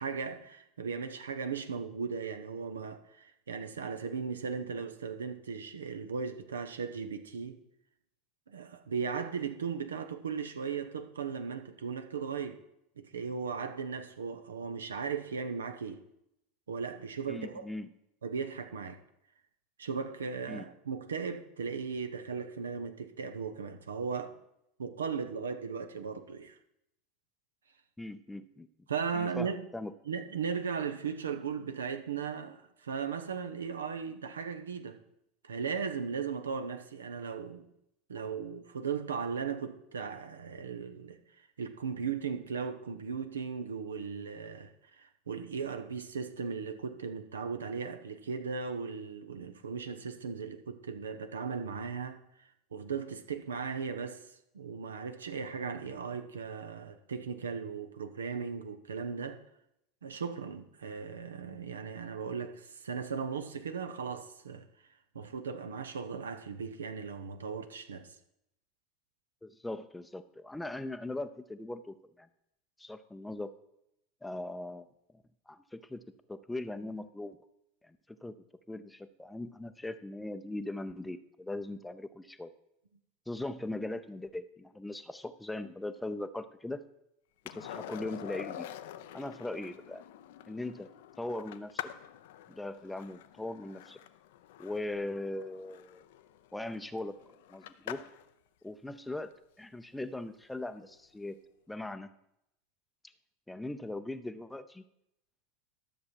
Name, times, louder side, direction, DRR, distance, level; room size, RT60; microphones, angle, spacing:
voice 1, 0.0-7.6 8.5-12.6 13.0-16.0 16.7-17.7 18.2-19.0 19.8-24.4 24.8-26.5 28.9-29.6 30.1-35.0 35.4-37.6 38.1-41.2 41.6-44.7 45.0-52.2 52.7-54.3 54.5-59.4 60.0-64.6 65.1-68.2, right 6 dB, 75° right, 0.8 m, -37 dB
voice 2, 17.3-17.9 20.5-20.7 28.0-28.7 29.1-29.9 69.4-72.3 72.8-73.5 74.2-74.9 75.5-76.0 76.3-77.4 77.8-78.4 78.7-82.5 83.3-86.8 87.4-88.7 89.1-90.0 90.5-90.9 91.2-91.9 92.5-94.0 94.6-96.0 96.5-97.2 97.5-98.0 98.6-101.4 101.7-102.1 103.5-104.8, left 2 dB, 5° left, 0.6 m, -40 dB
Skateboard, 87.5-98.3 100.9-101.0, left 12 dB, 60° left, 0.5 m, -46 dB
12.5 x 7.1 x 4.5 m
figure-of-eight pair, 80°, 0 cm